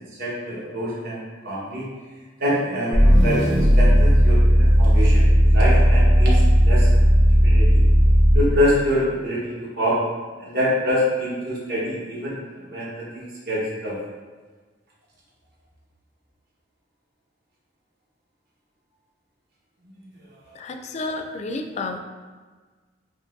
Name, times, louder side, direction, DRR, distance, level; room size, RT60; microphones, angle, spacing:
voice 1, 0.2-1.9 2.4-6.9 7.2-7.9 8.3-10.0 10.4-14.0 19.9-20.1 20.4-20.5, equal, 60° right, -6 dB, 1.2 m, -26 dB
sound 1, 2.9-8.5, equal, 85° right, 1.2 m, -15 dB
voice 2, 20.5-22.0, left 2 dB, 35° left, 5 dB, 0.3 m, -30 dB
5.2 x 2.9 x 2.5 m, 1.4 s
head